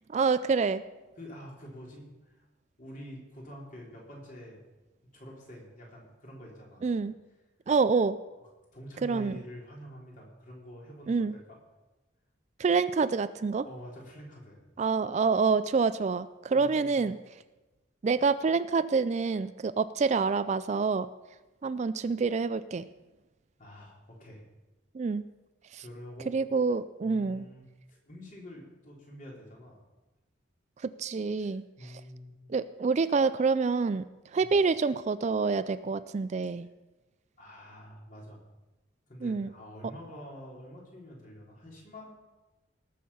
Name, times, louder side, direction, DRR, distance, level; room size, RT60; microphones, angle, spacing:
voice 1, 0.1-0.8 6.8-7.1 7.7-8.2 9.0-9.4 11.1-11.3 12.6-13.6 14.8-17.2 18.0-21.1 21.6-22.9 24.9-25.2 25.7-25.8 26.3-27.5 30.8-31.6 32.5-34.1 34.3-36.7 39.2-39.5, right 4 dB, 35° right, 14 dB, 0.3 m, -27 dB
voice 2, 1.2-2.5 2.8-4.6 5.1-6.9 8.4-11.6 13.6-14.6 16.5-16.9 23.6-24.4 25.8-26.4 27.0-27.6 27.9-29.8 31.4-32.4 34.4-34.5 37.4-38.4 39.1-42.1, equal, 40° left, -2 dB, 3.4 m, -47 dB
19.0 x 6.6 x 5.5 m, 1.1 s
head